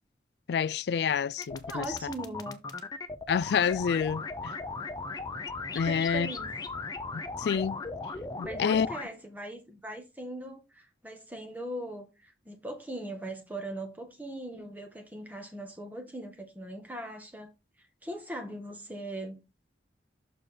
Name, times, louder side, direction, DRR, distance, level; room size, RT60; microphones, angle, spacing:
voice 1, 0.5-1.9 3.3-4.5 5.7-6.3 7.1-7.8 8.4-8.9, left 7 dB, 65° left, 0.3 m, -28 dB
sound 1, 1.4-9.0, left 3 dB, 20° left, 0.7 m, -37 dB
voice 2, 1.7-2.6 5.8-6.5 8.4-17.5 18.0-19.4, right 1 dB, 10° right, 1.6 m, -40 dB
6.5 x 4.8 x 4.3 m
head